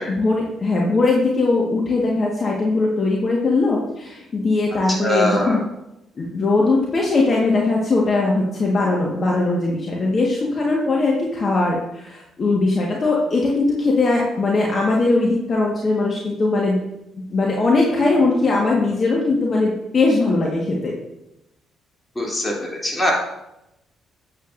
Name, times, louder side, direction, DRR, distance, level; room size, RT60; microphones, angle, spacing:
voice 1, 0.1-5.6 6.2-16.8 17.3-20.9, left 3 dB, 45° left, -2 dB, 1.5 m, -20 dB
voice 2, 5.0-5.6 22.1-23.1, equal, 20° left, -2 dB, 2.8 m, -22 dB
8.7 x 8.3 x 2.6 m, 0.88 s
supercardioid pair, 70°, 0 cm